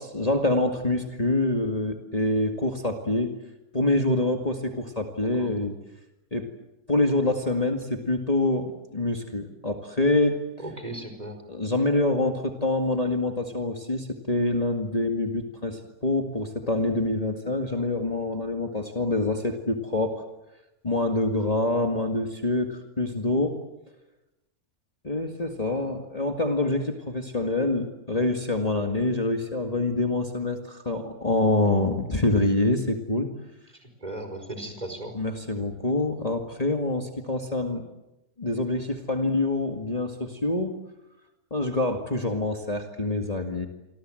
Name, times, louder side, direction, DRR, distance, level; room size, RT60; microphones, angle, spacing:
voice 1, 0.0-3.3 3.7-5.8 6.3-6.5 6.9-10.4 11.5-20.2 20.8-23.6 25.0-33.3 35.1-37.8 38.4-40.7 41.5-43.7, left 2 dB, 25° left, 3 dB, 2.1 m, -26 dB
voice 2, 10.6-11.4 34.0-35.1, right 1 dB, 30° right, 6 dB, 5.0 m, -36 dB
28.0 x 24.5 x 7.8 m, 0.97 s
omnidirectional pair, 1.5 m